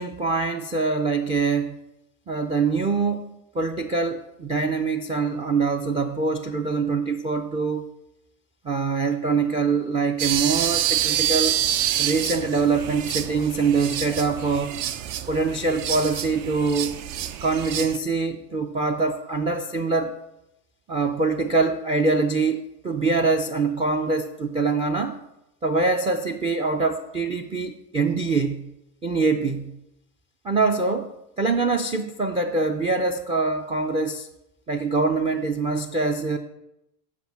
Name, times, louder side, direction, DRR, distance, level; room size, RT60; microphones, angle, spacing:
voice 1, 0.0-1.8 2.3-7.9 8.6-11.5 12.0-14.8 15.3-17.0 17.4-20.1 20.9-25.2 25.6-28.7 29.0-29.8 30.4-34.3 34.7-36.4, right 4 dB, 15° right, 6 dB, 0.3 m, -24 dB
sound 1, 10.2-18.0, right 11 dB, 60° right, 0.7 m, -27 dB
8.3 x 5.2 x 5.7 m, 0.87 s
hypercardioid pair, 90°, 49 cm